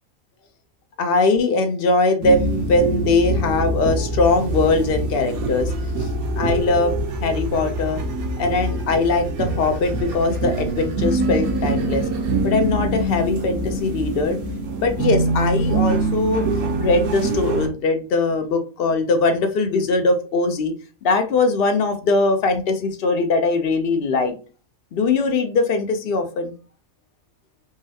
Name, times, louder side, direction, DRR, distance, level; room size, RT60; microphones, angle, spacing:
voice 1, 1.0-5.7 6.0-6.1 6.4-7.0 7.2-8.0 8.4-12.0 12.4-14.4 14.8-16.5 16.8-20.7 21.0-24.4 24.9-26.5, left 3 dB, 65° left, 6 dB, 0.6 m, -21 dB
sound 1, 2.2-17.7, right 2 dB, 90° right, 1.1 m, -24 dB
3.8 x 2.0 x 2.6 m, 0.36 s
omnidirectional pair, 1.5 m